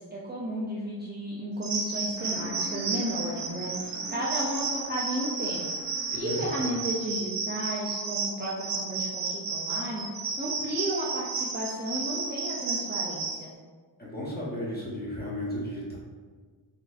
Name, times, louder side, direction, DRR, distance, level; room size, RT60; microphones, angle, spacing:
voice 1, 0.0-5.7 6.1-10.0 10.4-13.5, equal, 25° right, -6 dB, 0.4 m, -33 dB
sound 1, 1.6-13.4, right 4 dB, 90° right, 0.6 m, -32 dB
sound 2, 2.2-7.1, left 1 dB, 50° left, 0.8 m, -44 dB
voice 2, 6.1-6.7 14.0-16.0, left 1 dB, 20° left, -7 dB, 0.9 m, -34 dB
4.0 x 2.6 x 2.4 m, 1.5 s
wide cardioid pair, 125°, 46 cm